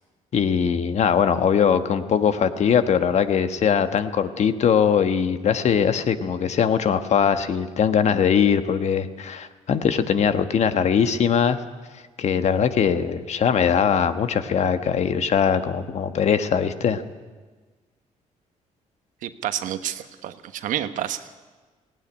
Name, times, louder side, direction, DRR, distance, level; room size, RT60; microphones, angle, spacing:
voice 1, 0.3-11.6 12.2-17.0, left 7 dB, 60° left, 10 dB, 1.3 m, -21 dB
voice 2, 19.2-21.2, right 11 dB, 85° right, 10 dB, 1.2 m, -29 dB
18.5 x 17.0 x 10.0 m, 1.3 s
cardioid pair, 100°, 13 cm